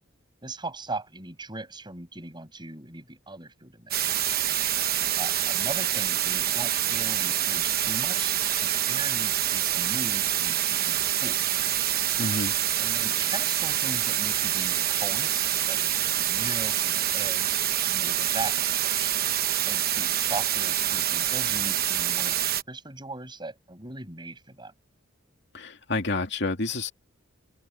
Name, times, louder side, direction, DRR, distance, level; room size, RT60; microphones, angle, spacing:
voice 1, 0.4-3.9 5.2-11.4 12.8-17.6 17.9-19.1 19.6-24.7, right 2 dB, 20° right, 7.5 m, -39 dB
sound 1, 3.9-22.6, right 11 dB, 50° right, 1.0 m, -26 dB
voice 2, 12.2-12.5 25.5-26.9, left 3 dB, 60° left, 2.5 m, -29 dB
open air
head